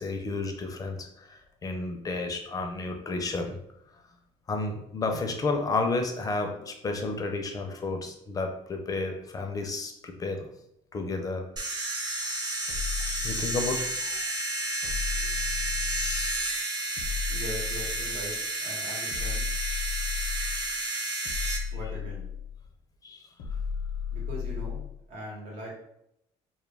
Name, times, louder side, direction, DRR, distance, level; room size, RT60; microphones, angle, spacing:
voice 1, 0.0-3.6 4.5-10.5 10.9-11.4 13.2-14.2 23.0-23.2, left 3 dB, 30° left, 4 dB, 0.4 m, -31 dB
sound 1, 11.6-21.6, right 2 dB, 35° right, 0.6 m, -31 dB
sound 2, 12.7-14.0 14.8-16.5 17.0-18.4 19.1-20.7 21.2-22.6 23.4-25.0, left 6 dB, 80° left, 0.5 m, -34 dB
voice 2, 17.3-19.5 21.7-22.3 24.1-24.8 25.1-25.7, equal, 75° right, -3 dB, 1.0 m, -40 dB
2.2 x 2.2 x 3.2 m, 0.77 s
cardioid pair, 105°, 12 cm